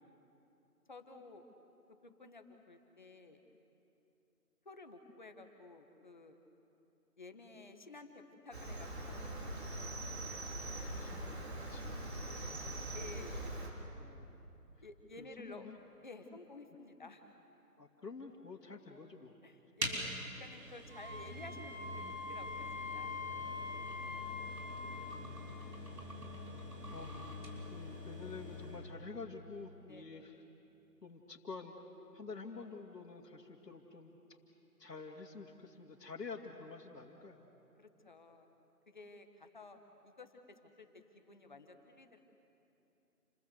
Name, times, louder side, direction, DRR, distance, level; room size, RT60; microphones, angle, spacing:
voice 1, 0.9-1.5 2.0-3.4 4.6-6.4 7.2-9.9 12.9-13.5 14.8-15.7 16.0-17.3 19.4-20.1 20.4-22.7 22.9-23.2 29.9-30.3 37.8-38.5 38.9-39.8 40.0-40.3 40.6-40.9 41.1-42.2, left 3 dB, 30° left, 6 dB, 1.4 m, -53 dB
Cricket, 8.5-13.7, right 1 dB, 40° right, 4.0 m, -42 dB
voice 2, 10.5-13.1 14.0-14.3 15.2-15.8 17.8-19.3 25.1-25.7 26.9-30.4 31.0-31.7 32.1-34.1 34.8-37.4, left 4 dB, 85° left, -3 dB, 2.7 m, -49 dB
sound 1, 19.8-28.9, left 1 dB, 85° right, 6.4 m, -45 dB
Wind instrument woodwind instrument, 20.9-25.0, left 4 dB, 15° right, 6.5 m, -44 dB
29.5 x 21.0 x 8.1 m, 2.9 s
figure-of-eight pair, 170°, 47 cm